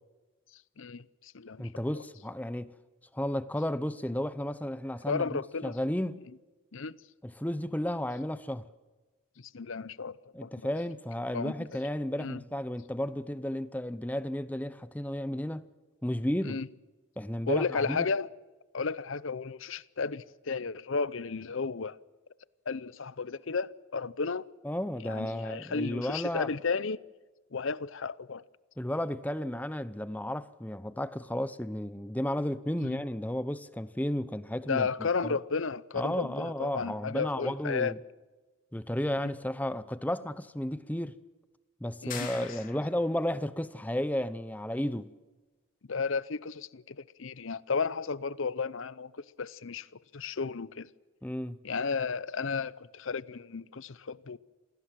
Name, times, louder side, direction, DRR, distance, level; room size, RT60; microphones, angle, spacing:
voice 1, 0.8-1.7 5.1-5.8 6.7-7.0 9.4-10.5 11.3-11.7 12.2-12.4 16.4-16.7 17.5-18.3 18.7-22.0 22.7-24.4 25.0-27.0 27.5-28.4 32.8-33.0 34.7-37.9 39.2-39.3 42.0-42.3 45.9-49.9 50.1-50.9 51.6-54.4, left 4 dB, 70° left, 0.7 m, -33 dB
voice 2, 1.6-2.7 3.1-6.2 7.2-8.7 10.3-15.7 16.0-16.6 17.2-18.1 24.6-26.5 28.8-35.4 35.9-38.0 38.7-41.2 41.8-45.1 51.2-51.6, left 1 dB, 5° left, 0.7 m, -33 dB
sound 1, 42.1-43.2, left 7 dB, 40° left, 3.2 m, -42 dB
27.5 x 18.0 x 7.6 m
head